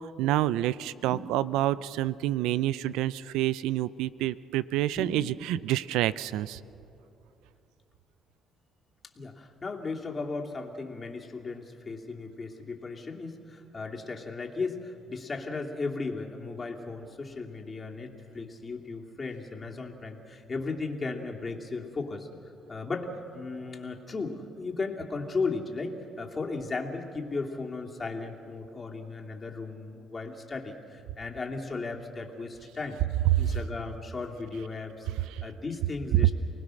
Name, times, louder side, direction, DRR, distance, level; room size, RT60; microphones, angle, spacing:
voice 1, 0.0-6.6 35.3-35.4, right 14 dB, 85° right, 17 dB, 0.5 m, -28 dB
sound 1, 1.1-1.9 5.0-5.9, right 2 dB, 30° right, 4.8 m, -41 dB
voice 2, 9.2-22.3 22.7-33.0 33.4-36.3, left 3 dB, 30° left, 0 dB, 2.8 m, -36 dB
30.0 x 19.5 x 6.5 m, 2.7 s
cardioid pair, 95°, 0 cm